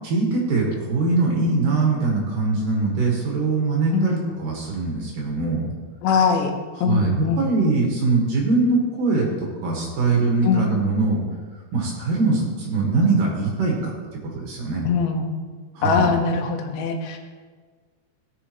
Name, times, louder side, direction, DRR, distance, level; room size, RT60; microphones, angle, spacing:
voice 1, 0.0-5.7 6.8-11.2 11.7-13.9 14.3-14.8 15.7-16.1, right 3 dB, 55° right, -2 dB, 2.9 m, -22 dB
voice 2, 6.0-6.5 6.8-7.5 10.4-10.7 14.8-15.3 15.8-17.2, left 5 dB, 90° left, 4 dB, 3.2 m, -22 dB
17.0 x 7.1 x 3.1 m, 1.5 s
omnidirectional pair, 5.1 m